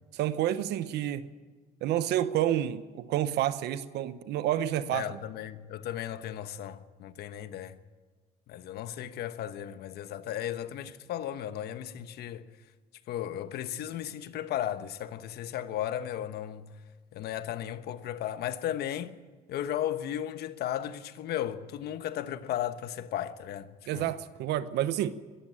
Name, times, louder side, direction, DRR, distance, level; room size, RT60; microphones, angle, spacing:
voice 1, 0.1-1.3 1.8-5.2 23.9-25.1, right 12 dB, 80° right, 1.1 m, -29 dB
voice 2, 4.9-7.8 8.5-12.4 13.1-16.7 17.1-19.2 19.5-24.1, left 11 dB, 75° left, 1.3 m, -35 dB
22.0 x 14.0 x 8.8 m
cardioid pair, 110°, 17 cm